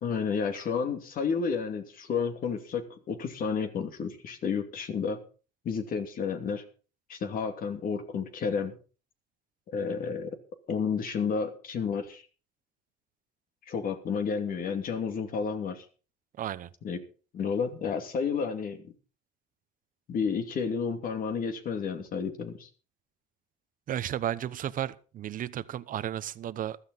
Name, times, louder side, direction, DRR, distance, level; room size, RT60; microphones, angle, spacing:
voice 1, 0.0-5.2 5.6-6.6 7.1-8.8 9.7-10.4 10.7-12.2 13.7-15.9 16.8-17.0 17.3-18.9 20.1-22.7, left 6 dB, 55° left, 2.7 m, -31 dB
voice 2, 16.4-16.7 23.9-26.8, right 11 dB, 55° right, 0.9 m, -33 dB
15.5 x 13.0 x 4.1 m
cardioid pair, 110°, 17 cm